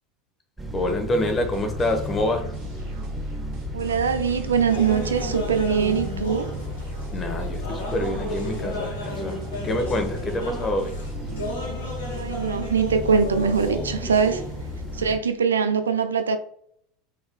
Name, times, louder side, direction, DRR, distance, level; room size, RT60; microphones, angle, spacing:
sound 1, 0.6-15.2, equal, 10° right, 0.9 m, -34 dB
voice 1, 0.7-2.4 7.1-10.9, left 1 dB, 25° left, 1.0 m, -26 dB
sound 2, 1.2-11.4, left 2 dB, 50° right, 1.8 m, -39 dB
voice 2, 3.7-6.5 12.2-14.4 14.9-16.4, right 6 dB, 75° right, 0.4 m, -22 dB
sound 3, 4.7-15.1, left 1 dB, 70° left, 1.4 m, -34 dB
5.3 x 3.7 x 2.2 m
figure-of-eight pair, 75°, 0 cm